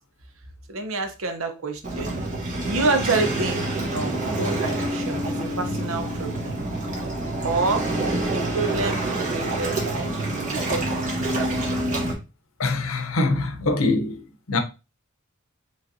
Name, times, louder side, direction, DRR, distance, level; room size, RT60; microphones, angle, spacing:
voice 1, 0.7-2.2 2.6-3.6 3.9-6.6 7.4-7.8 8.3-9.0 9.3-11.4, right 3 dB, 80° right, 0.8 m, -28 dB
Waves surf, 1.8-12.1, right 2 dB, 40° right, 1.3 m, -27 dB
voice 2, 12.6-14.2 14.5-14.6, left 2 dB, 80° left, 0.7 m, -23 dB
5.3 x 3.1 x 2.6 m
head